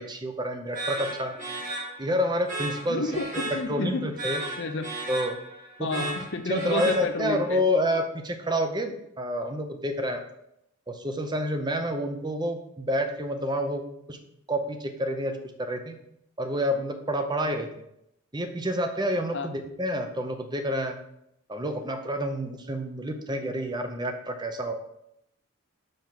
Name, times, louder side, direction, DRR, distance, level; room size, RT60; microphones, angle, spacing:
voice 1, 0.0-1.4 2.0-3.2 3.7-4.4 5.1-5.4 5.8-6.1 6.5-10.2 10.9-13.8 14.1-14.2 14.5-16.0 16.4-17.7 18.3-21.0 21.5-24.7, equal, 20° right, 6 dB, 0.7 m, -28 dB
sound 1, 0.7-7.5, right 1 dB, 40° right, 1.7 m, -35 dB
voice 2, 2.9-4.0 4.6-4.9 5.8-7.6 19.3-19.5, left 3 dB, 60° left, 9 dB, 0.7 m, -30 dB
6.0 x 5.4 x 5.9 m, 0.79 s
head